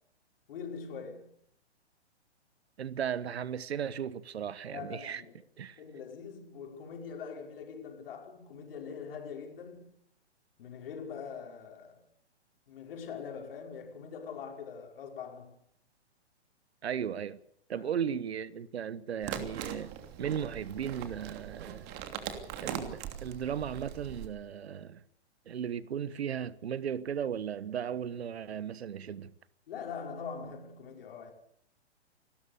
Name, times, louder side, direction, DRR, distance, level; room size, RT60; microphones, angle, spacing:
voice 1, 0.5-1.3 4.7-5.4 5.8-10.0 10.6-12.0 12.7-15.6 17.8-17.9 29.7-31.3, left 6 dB, 55° left, 5.5 m, -43 dB
voice 2, 2.8-5.2 5.6-5.8 16.8-17.4 17.7-21.9 22.6-25.0 25.5-29.3, right 8 dB, 65° right, 1.2 m, -36 dB
sound 1, 19.2-24.3, right 9 dB, 30° right, 2.9 m, -41 dB
28.5 x 13.0 x 6.9 m
figure-of-eight pair, 125°, 34 cm